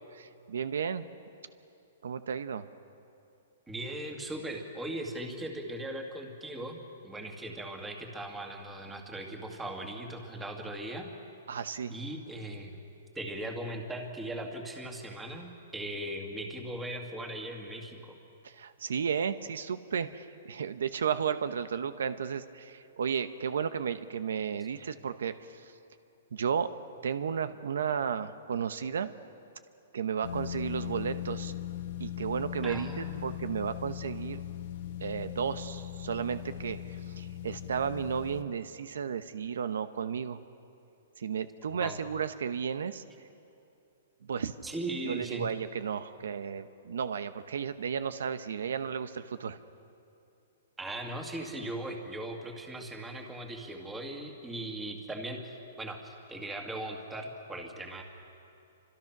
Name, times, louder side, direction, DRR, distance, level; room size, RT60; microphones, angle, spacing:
voice 1, 0.2-1.1 2.0-2.7 11.5-11.9 18.4-25.7 26.3-26.7 27.0-29.1 29.9-31.5 32.0-34.4 35.0-40.4 41.2-43.0 44.2-44.5 45.0-49.6, right 7 dB, 85° right, 12 dB, 1.0 m, -33 dB
voice 2, 3.7-6.8 7.0-11.1 11.9-12.8 13.1-18.1 32.6-33.3 41.8-42.0 44.6-45.5 50.8-58.0, right 1 dB, 5° right, 2 dB, 2.1 m, -39 dB
sound 1, 30.2-38.4, left 11 dB, 50° left, 1.5 m, -39 dB
29.0 x 26.0 x 6.1 m, 2.7 s
hypercardioid pair, 165°, 0 cm